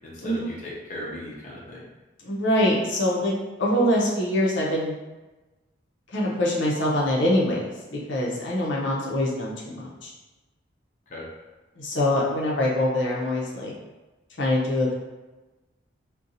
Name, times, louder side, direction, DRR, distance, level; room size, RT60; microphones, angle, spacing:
voice 1, 0.0-1.8 11.1-11.3, left 1 dB, 40° left, -5 dB, 0.6 m, -37 dB
voice 2, 2.2-3.3 3.6-4.9 6.1-10.1 11.8-13.7 14.4-14.9, left 1 dB, 75° left, -4 dB, 0.7 m, -24 dB
2.6 x 2.3 x 4.0 m, 1.1 s
head